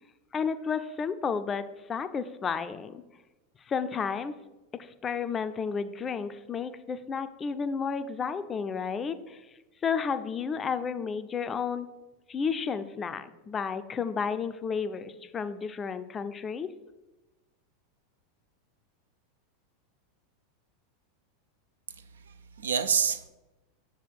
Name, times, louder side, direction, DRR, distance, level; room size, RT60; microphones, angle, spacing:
voice 1, 0.3-1.6 1.9-3.0 3.7-4.3 5.0-9.4 9.8-11.9 12.3-16.7, left 6 dB, 25° left, 11 dB, 0.4 m, -32 dB
voice 2, 21.9-23.3, right 6 dB, 85° right, 10 dB, 0.4 m, -29 dB
5.8 x 3.4 x 4.7 m, 1.1 s
hypercardioid pair, 95°, 0 cm